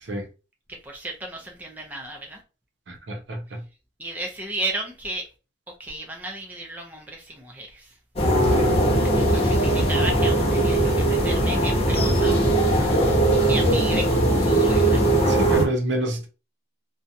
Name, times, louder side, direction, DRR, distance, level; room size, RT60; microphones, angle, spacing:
voice 1, 0.8-2.4 4.0-5.3 5.8-7.9 9.2-12.5 13.3-15.0, right 2 dB, 10° right, 0.5 m, -34 dB
voice 2, 2.9-3.6 8.6-8.7 15.3-16.3, equal, 70° right, 0.6 m, -27 dB
sound 1, 8.2-15.7, right 1 dB, 30° left, 0.6 m, -20 dB
2.7 x 2.2 x 2.6 m
head